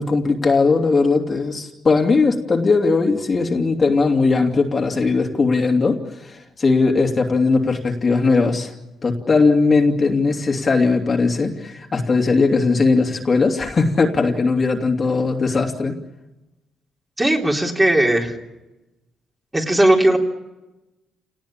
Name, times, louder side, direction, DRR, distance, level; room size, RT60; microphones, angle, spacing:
voice 1, 0.0-8.7 9.0-16.0, left 4 dB, 35° left, 2 dB, 2.8 m, -18 dB
voice 2, 17.2-18.3 19.5-20.2, right 1 dB, 15° right, 0 dB, 3.6 m, -17 dB
29.0 x 19.0 x 8.8 m, 1.0 s
cardioid pair, 90°, 0 cm